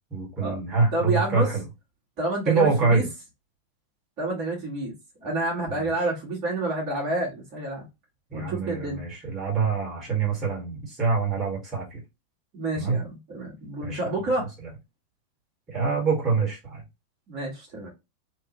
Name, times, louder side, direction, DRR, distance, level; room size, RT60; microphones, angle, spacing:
voice 1, 0.1-1.6 2.5-3.1 5.7-5.9 8.3-12.0 12.7-13.0 13.8-14.1 15.7-16.8, right 4 dB, 25° right, 1.9 m, -25 dB
voice 2, 0.9-1.5 2.2-3.0 4.2-4.9 5.2-7.9 8.3-9.0 12.5-14.5 17.3-17.9, right 2 dB, 40° right, 1.7 m, -29 dB
3.2 x 3.0 x 3.0 m
figure-of-eight pair, 90°, 0 cm